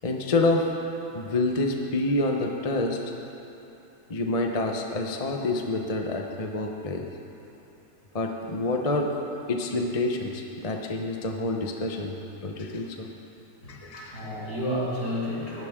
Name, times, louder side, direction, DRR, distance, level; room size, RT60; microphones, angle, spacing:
voice 1, 0.0-0.7 1.1-3.0 4.1-7.0 8.1-9.1 9.5-13.1 13.7-14.3, left 2 dB, 30° left, 2 dB, 0.8 m, -27 dB
voice 2, 13.6-15.7, equal, 60° left, -7 dB, 5.2 m, -31 dB
20.0 x 15.0 x 3.7 m, 2.9 s
omnidirectional pair, 2.0 m